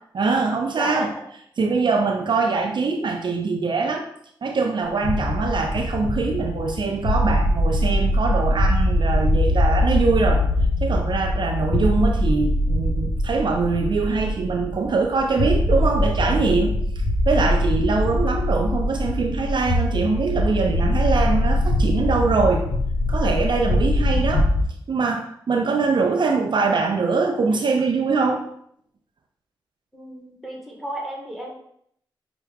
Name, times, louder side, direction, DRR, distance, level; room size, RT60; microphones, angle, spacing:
voice 1, 0.1-1.1 1.6-4.1 4.4-10.5 10.8-16.8 17.3-22.6 23.1-24.5 24.9-28.4, right 4 dB, 55° right, 3 dB, 0.4 m, -23 dB
voice 2, 0.7-1.2 29.9-31.5, right 1 dB, ahead, -1 dB, 1.4 m, -32 dB
sound 1, 4.9-24.6, left 1 dB, 70° left, 0.6 m, -22 dB
5.5 x 2.0 x 3.4 m, 0.69 s
cardioid pair, 50°, 9 cm